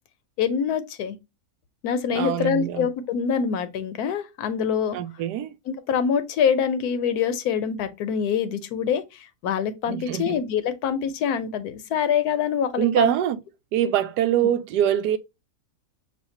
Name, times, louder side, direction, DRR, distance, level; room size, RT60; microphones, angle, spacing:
voice 1, 0.4-1.2 1.8-5.0 5.7-13.1 14.4-14.5, left 7 dB, 75° left, 1.1 m, -25 dB
voice 2, 2.1-2.9 4.9-5.5 9.9-10.4 12.8-13.4 13.7-15.2, right 10 dB, 85° right, 1.1 m, -24 dB
6.4 x 2.4 x 2.6 m
omnidirectional pair, 1.7 m